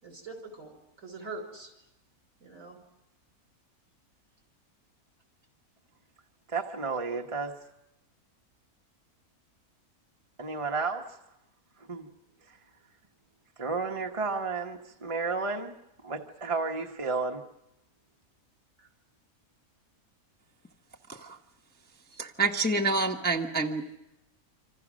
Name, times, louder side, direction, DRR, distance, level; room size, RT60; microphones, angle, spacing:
voice 1, 0.0-1.7 2.4-2.8 18.8-18.9, right 3 dB, 65° right, 3 dB, 5.8 m, -43 dB
voice 2, 6.5-7.6 10.4-11.2 11.8-12.1 12.5-12.6 13.6-15.7 16.0-17.4, right 4 dB, 25° right, 2 dB, 1.2 m, -32 dB
voice 3, 22.2-24.0, right 3 dB, 5° left, 2 dB, 1.0 m, -28 dB
27.0 x 26.0 x 6.4 m, 0.89 s
omnidirectional pair, 1.6 m